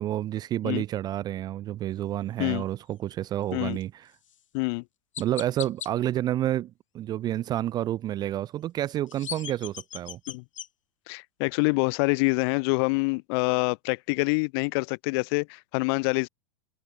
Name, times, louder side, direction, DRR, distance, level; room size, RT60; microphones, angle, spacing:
voice 1, 0.0-4.1 5.2-10.2, right 13 dB, 25° right, 0.3 m, -29 dB
Chirp tweet, 4.2-4.4 5.1-5.9 8.9-10.7, left 10 dB, 75° left, 2.6 m, -38 dB
voice 2, 4.5-4.8 10.3-10.4 11.1-16.3, left 30 dB, 50° left, 0.7 m, -26 dB
figure-of-eight pair, 95°, 17 cm